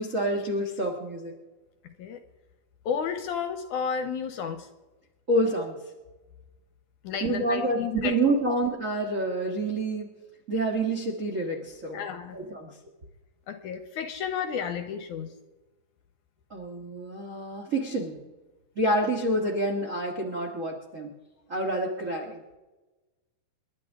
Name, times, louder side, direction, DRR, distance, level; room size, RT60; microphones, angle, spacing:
voice 1, 0.0-1.3 5.3-5.8 7.2-10.1 10.5-12.0 12.3-12.7 16.5-18.2 18.7-21.1 21.5-22.4, right 1 dB, 75° right, 1 dB, 0.7 m, -28 dB
voice 2, 2.9-4.7 7.0-8.2 8.5-8.6 11.9-12.4 13.5-15.3, left 7 dB, 75° left, 8 dB, 1.9 m, -32 dB
29.5 x 11.5 x 3.6 m, 1.2 s
omnidirectional pair, 4.2 m